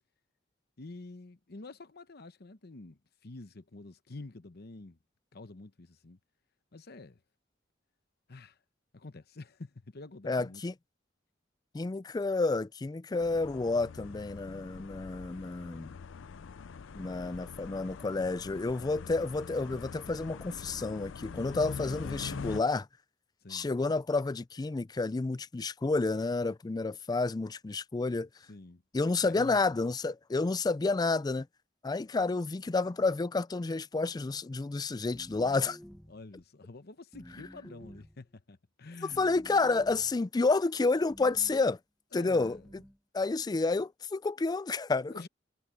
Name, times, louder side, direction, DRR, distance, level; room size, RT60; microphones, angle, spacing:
voice 1, 0.8-5.0 5.3-6.2 6.7-7.2 8.3-8.6 8.9-10.6 16.9-17.9 23.4-23.8 28.5-28.8 29.2-29.8 36.1-39.2 42.1-42.7 45.1-45.3, left 2 dB, 55° left, 0.9 m, -48 dB
voice 2, 10.2-10.7 11.7-15.9 16.9-22.9 23.5-28.3 28.9-31.5 31.8-35.8 39.2-41.8 42.1-42.6 43.1-45.1, left 3 dB, 20° left, 0.4 m, -30 dB
sound 1, 13.2-22.6, left 5 dB, 85° left, 0.5 m, -44 dB
sound 2, 35.1-36.3 37.1-38.2 39.1-40.2 41.1-41.7 42.4-43.0, equal, 5° left, 0.9 m, -51 dB
head